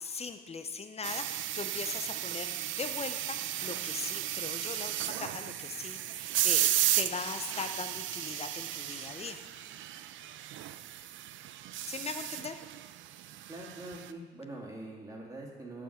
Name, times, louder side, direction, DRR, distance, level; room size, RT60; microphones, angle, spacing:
voice 1, 0.0-9.4 11.8-12.6, left 5 dB, 30° left, 8 dB, 0.7 m, -40 dB
sound 1, 1.0-14.1, right 13 dB, 75° right, 0.4 m, -34 dB
voice 2, 13.5-15.8, right 2 dB, 15° right, -2 dB, 2.1 m, -44 dB
7.2 x 5.7 x 6.4 m, 1.3 s
cardioid pair, 90°, 20 cm